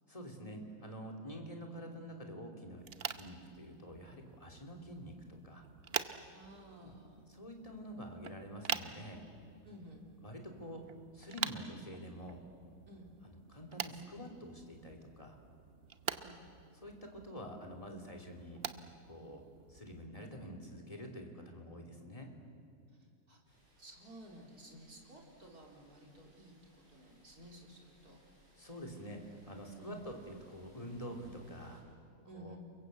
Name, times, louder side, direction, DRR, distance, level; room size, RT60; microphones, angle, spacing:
voice 1, 0.1-5.6 6.8-6.9 7.3-9.2 10.2-10.8 11.1-12.4 13.5-15.4 16.7-18.6 19.1-19.4 19.7-22.3 28.6-31.8 32.3-32.6, equal, 20° left, 1 dB, 3.3 m, -47 dB
sound 1, 2.8-20.1, right 7 dB, 45° right, 0.9 m, -46 dB
voice 2, 6.1-7.3 9.6-10.1 12.9-13.1 16.1-16.4 22.9-23.4 23.8-26.6 26.9-28.2 29.8-30.1 32.2-32.6, right 1 dB, 65° right, -1 dB, 4.6 m, -54 dB
sound 2, 23.5-31.8, right 1 dB, 85° right, 8.7 m, -67 dB
30.0 x 22.5 x 8.1 m, 2.3 s
omnidirectional pair, 1.7 m